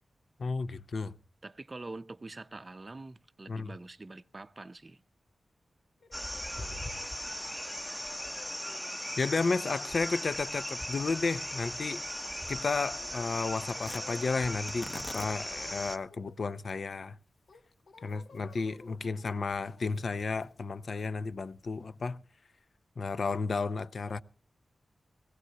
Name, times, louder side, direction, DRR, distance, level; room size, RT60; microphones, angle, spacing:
voice 1, 0.4-1.1 3.5-3.7 6.6-6.9 9.2-12.0 12.5-17.2 18.0-22.2 23.0-24.2, left 4 dB, 60° left, 0.6 m, -33 dB
voice 2, 1.4-5.0, right 2 dB, 30° right, 0.6 m, -45 dB
sound 1, 6.0-14.5 15.0-15.5 15.8-17.0 17.5-21.2, left 3 dB, 80° left, 1.2 m, -58 dB
sound 2, 6.1-16.0, equal, 5° left, 0.8 m, -38 dB
Tearing, 13.8-22.1, left 2 dB, 40° left, 1.2 m, -51 dB
19.0 x 16.5 x 2.9 m
wide cardioid pair, 110°, 0 cm